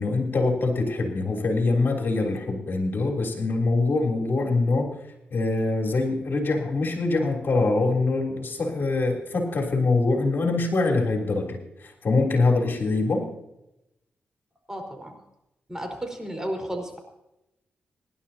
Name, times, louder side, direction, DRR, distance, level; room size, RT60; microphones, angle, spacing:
voice 1, 0.0-4.9 5.3-13.3, left 3 dB, 55° left, 0 dB, 3.4 m, -24 dB
voice 2, 14.7-15.2 15.7-17.0, right 1 dB, 15° right, 3 dB, 4.5 m, -33 dB
25.5 x 11.5 x 2.9 m, 0.90 s
cardioid pair, 60°, 4 cm